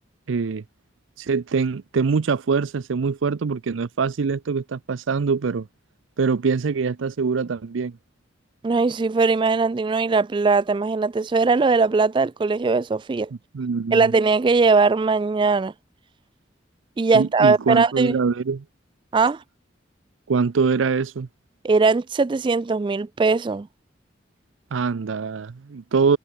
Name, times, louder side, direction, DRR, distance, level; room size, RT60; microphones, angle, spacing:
voice 1, 0.3-0.6 1.2-5.7 6.2-8.0 13.5-14.1 17.1-18.6 20.3-21.3 24.7-26.2, right 5 dB, 90° right, 0.5 m, -23 dB
voice 2, 8.6-13.3 13.9-15.7 17.0-18.2 19.1-19.4 21.6-23.7, right 4 dB, 25° right, 0.3 m, -20 dB
head